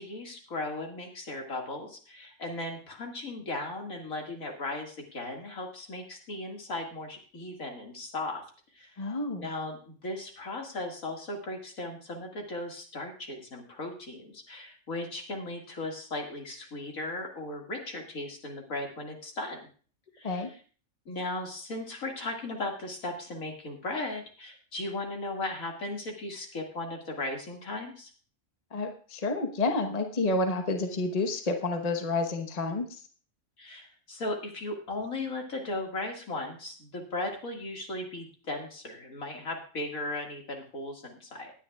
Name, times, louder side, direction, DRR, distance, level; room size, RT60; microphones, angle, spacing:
voice 1, 0.0-8.4 8.7-9.0 9.4-19.6 20.2-20.5 21.1-28.1 33.6-41.5, left 2 dB, 75° left, 1 dB, 2.5 m, -37 dB
voice 2, 9.0-9.5 20.2-20.5 28.7-33.0, left 2 dB, 30° left, 5 dB, 1.2 m, -29 dB
18.5 x 9.9 x 2.4 m, 0.40 s
omnidirectional pair, 1.4 m